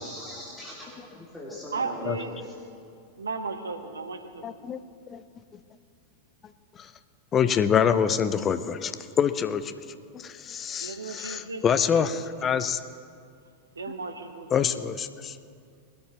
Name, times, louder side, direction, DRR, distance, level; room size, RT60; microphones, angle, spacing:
voice 1, 0.0-2.5, left 1 dB, 10° left, -6 dB, 2.7 m, -41 dB
voice 2, 1.7-2.3 3.2-4.6 10.8-12.6 13.7-14.5, right 4 dB, 75° right, 7 dB, 1.1 m, -35 dB
voice 3, 4.4-4.8 5.1-5.4 6.7-6.9 7.3-9.8 10.1-12.8 14.5-15.4, left 7 dB, 25° left, 12 dB, 0.6 m, -26 dB
20.5 x 13.0 x 3.1 m, 2.3 s
figure-of-eight pair, 90°, 0 cm